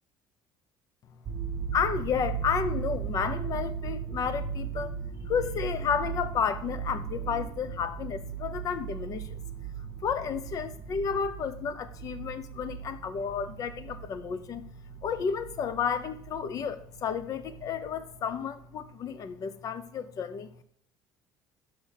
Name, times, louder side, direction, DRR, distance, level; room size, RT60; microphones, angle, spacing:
sound 1, 1.2-18.3 18.6-18.9, right 7 dB, 35° right, 1.1 m, -38 dB
voice 1, 1.7-4.9 5.2-9.4 10.0-14.6 15.0-20.5, left 7 dB, 45° left, 12 dB, 0.8 m, -32 dB
6.4 x 6.1 x 5.6 m, 0.64 s
cardioid pair, 135°, 8 cm